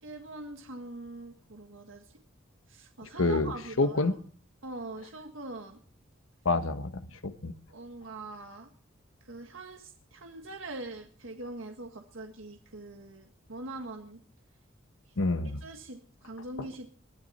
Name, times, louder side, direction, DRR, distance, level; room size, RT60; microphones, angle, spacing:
voice 1, 0.0-2.2 2.7-4.2 4.6-5.8 7.7-8.7 9.2-14.2 15.1-15.2 15.6-16.9, right 2 dB, 70° right, 4 dB, 1.7 m, -43 dB
voice 2, 3.2-3.5 3.8-4.2 6.4-7.5 15.2-15.6, left 3 dB, 80° left, 10 dB, 1.2 m, -27 dB
21.0 x 13.0 x 4.2 m, 0.43 s
head